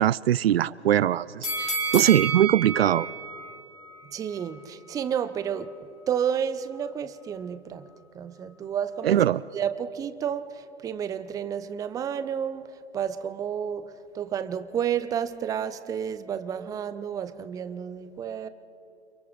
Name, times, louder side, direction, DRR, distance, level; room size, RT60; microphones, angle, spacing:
voice 1, 0.0-3.1 9.0-9.4, right 11 dB, 65° right, 0.5 m, -21 dB
sound 1, 1.4-4.5 4.9-5.0, right 3 dB, 80° left, 3.6 m, -31 dB
voice 2, 4.1-5.7 6.1-7.9 8.1-9.2 9.5-18.5, right 8 dB, 10° right, 0.5 m, -31 dB
29.5 x 26.0 x 4.0 m
figure-of-eight pair, 105°, 33 cm